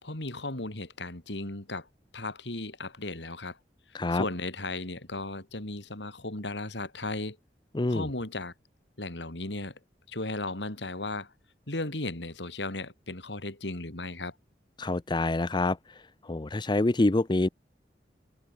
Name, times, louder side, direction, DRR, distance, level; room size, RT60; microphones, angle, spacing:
voice 1, 0.0-1.9 2.1-3.6 4.1-7.4 7.9-8.5 9.0-9.8 10.1-11.3 11.7-14.3, left 2 dB, 85° left, 3.9 m, -35 dB
voice 2, 7.7-8.1 14.8-15.8 16.2-17.5, left 2 dB, 25° left, 0.6 m, -26 dB
head